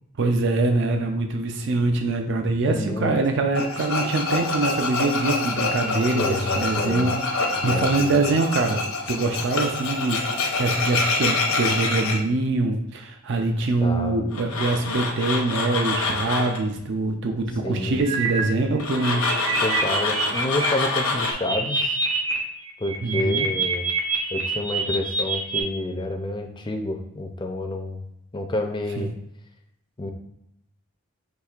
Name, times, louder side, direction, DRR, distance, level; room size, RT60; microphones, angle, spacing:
voice 1, 0.2-10.2 10.6-19.2 23.0-23.5 29.0-29.1, right 2 dB, 55° right, 4 dB, 0.4 m, -24 dB
voice 2, 2.6-3.1 6.2-7.1 7.6-8.3 13.8-14.2 17.6-18.0 19.6-22.0 22.8-23.9 24.3-28.1 28.3-29.1 30.0-30.1, left 1 dB, 20° left, 3 dB, 0.4 m, -29 dB
Tools, 3.5-12.2 14.3-16.6 18.8-21.3, left 3 dB, 80° left, 0.8 m, -26 dB
sound 1, 18.0-18.4 18.8-20.7 21.0-22.4 22.7-25.6, right 4 dB, 75° right, 0.9 m, -26 dB
5.9 x 3.1 x 2.4 m, 0.80 s
head